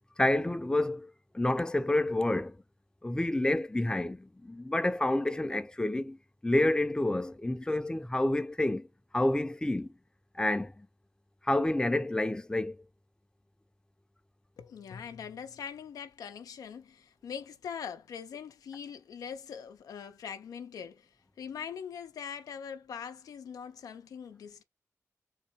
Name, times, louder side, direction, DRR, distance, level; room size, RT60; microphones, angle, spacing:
voice 1, 0.2-1.1 1.3-2.6 3.0-6.2 6.4-8.9 9.1-9.9 10.3-10.9 11.4-12.8, left 1 dB, 15° left, 0.6 m, -29 dB
voice 2, 14.6-21.1 21.4-24.6, left 7 dB, 90° left, 0.5 m, -42 dB
3.9 x 2.6 x 2.9 m
cardioid pair, 50°, 6 cm